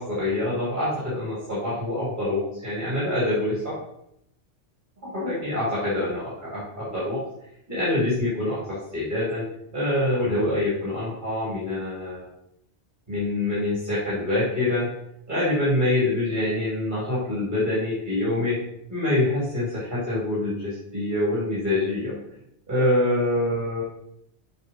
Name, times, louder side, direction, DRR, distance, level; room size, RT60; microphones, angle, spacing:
voice 1, 0.0-3.7 5.0-7.2 7.7-9.4 9.7-12.2 13.1-14.9 15.3-18.6 18.9-22.1 22.7-23.8, left 1 dB, 45° right, -8 dB, 3.1 m, -25 dB
8.0 x 5.5 x 4.2 m, 0.76 s
omnidirectional pair, 1.2 m